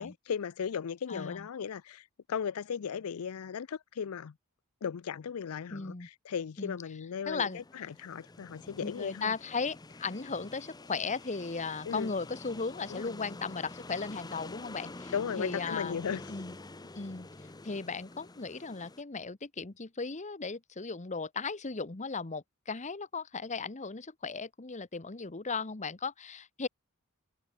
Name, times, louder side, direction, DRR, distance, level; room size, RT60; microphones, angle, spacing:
voice 1, 0.0-4.3 4.8-9.3 11.9-12.1 12.9-13.1 15.1-16.2, left 7 dB, 85° left, 0.5 m, -36 dB
voice 2, 1.1-1.5 5.7-6.1 6.6-6.8 7.3-7.6 8.8-16.0 16.3-16.6 16.9-17.3 17.6-26.7, left 4 dB, 35° left, 1.1 m, -36 dB
sound 1, 7.5-19.0, left 2 dB, 20° left, 0.7 m, -47 dB
head